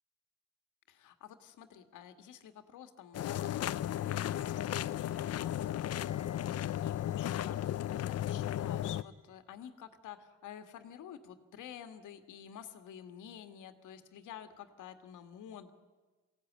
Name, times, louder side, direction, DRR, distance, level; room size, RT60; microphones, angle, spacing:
voice 1, 0.9-15.7, left 9 dB, 80° left, 9 dB, 1.9 m, -50 dB
sound 1, 3.1-9.0, left 12 dB, 55° left, 0.6 m, -35 dB
sound 2, 3.1-9.4, left 3 dB, 50° right, 5.5 m, -66 dB
23.0 x 16.5 x 9.5 m, 1.3 s
cardioid pair, 90°, 30 cm